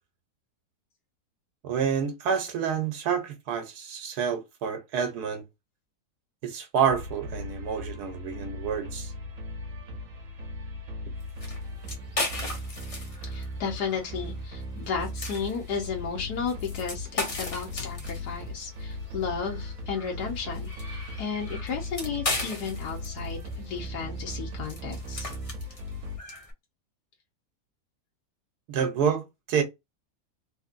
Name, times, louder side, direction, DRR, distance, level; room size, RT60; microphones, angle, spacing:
voice 1, 1.6-5.4 6.4-9.1 28.7-29.6, right 7 dB, 90° right, 1.3 m, -28 dB
sound 1, 6.9-26.2, left 1 dB, 65° right, 1.2 m, -38 dB
sound 2, 11.2-26.5, left 2 dB, 30° left, 0.7 m, -38 dB
voice 2, 13.2-25.3, left 6 dB, 85° left, 1.4 m, -34 dB
3.4 x 2.6 x 2.5 m
omnidirectional pair, 1.6 m